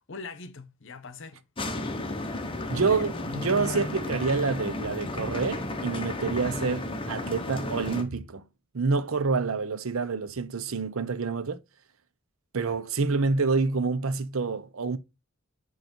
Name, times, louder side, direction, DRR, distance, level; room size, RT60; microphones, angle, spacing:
voice 1, 0.1-1.4 2.7-3.1 3.6-4.0, left 3 dB, 60° left, 0.9 m, -41 dB
sound 1, 1.6-8.0, left 2 dB, 25° left, 0.9 m, -33 dB
voice 2, 2.7-8.4 8.7-11.6 12.5-15.0, right 4 dB, 75° right, 0.7 m, -27 dB
8.0 x 3.1 x 4.3 m
head